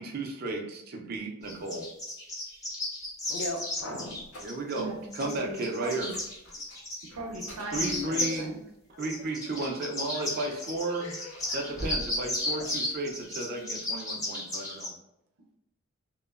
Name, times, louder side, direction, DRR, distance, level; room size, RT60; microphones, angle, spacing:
voice 1, 0.0-1.9 4.4-6.1 7.7-8.5 9.0-11.1 11.5-14.9, right 2 dB, 45° right, 1 dB, 0.4 m, -34 dB
sound 1, 1.5-4.8 5.1-7.1 7.3-8.4 9.0-14.9, left 1 dB, 15° left, 0.6 m, -34 dB
sound 2, 3.0-4.9 5.2-5.4 5.8-8.6 9.5-10.3 10.9-13.2, equal, 85° left, 1.4 m, -45 dB
voice 2, 3.3-4.2 8.2-8.3 8.9-9.0 10.1-10.5 11.0-11.6, left 1 dB, 60° left, 2 dB, 0.5 m, -39 dB
voice 3, 4.7-6.1 7.1-8.5, right 1 dB, 90° right, 1 dB, 0.6 m, -37 dB
2.9 x 2.0 x 2.3 m, 0.83 s
head